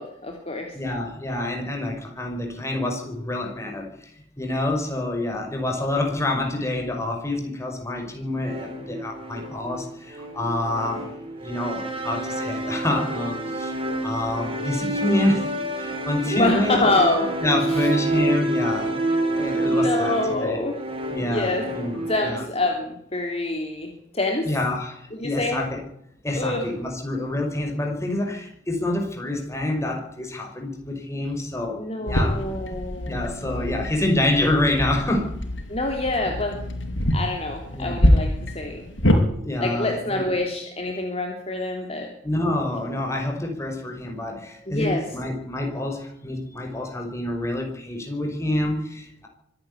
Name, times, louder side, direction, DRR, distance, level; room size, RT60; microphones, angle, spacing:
voice 1, 0.0-0.8 16.3-17.3 17.7-17.9 19.7-20.8 21.2-21.7 22.0-24.5 25.1-25.6 26.3-26.6 31.8-33.2 35.7-36.6 37.1-38.9 39.6-42.1 44.7-45.0, left 2 dB, 35° left, 2 dB, 3.1 m, -26 dB
voice 2, 0.7-11.1 11.4-13.7 14.0-16.8 17.4-18.9 19.3-20.6 21.1-22.4 24.5-25.8 26.2-32.4 33.0-35.3 37.7-38.0 39.4-40.3 42.2-49.3, left 1 dB, 15° left, 2 dB, 5.4 m, -27 dB
sound 1, 8.4-22.3, right 1 dB, 30° right, 4.3 m, -28 dB
sound 2, 32.1-39.2, left 1 dB, 80° left, 5.1 m, -25 dB
25.0 x 11.0 x 9.9 m, 0.75 s
head